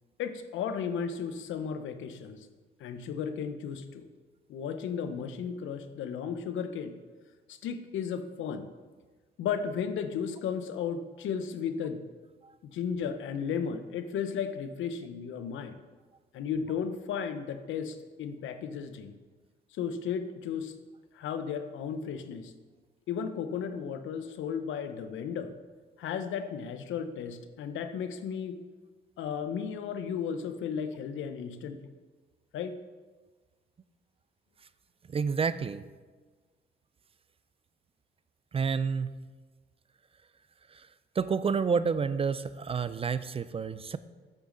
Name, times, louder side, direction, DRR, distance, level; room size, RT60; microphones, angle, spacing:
voice 1, 0.2-2.5 2.8-4.1 4.5-7.0 7.5-8.7 9.4-12.0 12.6-15.8 16.3-19.1 19.7-20.7 21.1-22.5 23.1-25.5 26.0-28.6 29.2-31.9 32.5-32.8, left 7 dB, 80° left, 9 dB, 0.8 m, -34 dB
voice 2, 35.1-35.8 38.5-39.2 40.7-40.9 41.2-44.0, right 5 dB, 30° right, 14 dB, 0.4 m, -29 dB
8.3 x 8.3 x 3.9 m, 1.4 s
cardioid pair, 90°, 20 cm